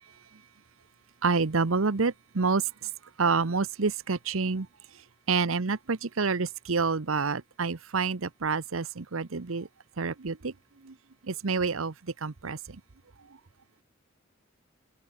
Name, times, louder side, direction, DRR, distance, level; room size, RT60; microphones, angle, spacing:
voice 1, 1.2-2.6 3.2-4.7 5.3-9.7 10.0-10.5 10.8-10.9 11.2-11.9 12.2-12.8, right 4 dB, 90° right, 0.9 m, -28 dB
head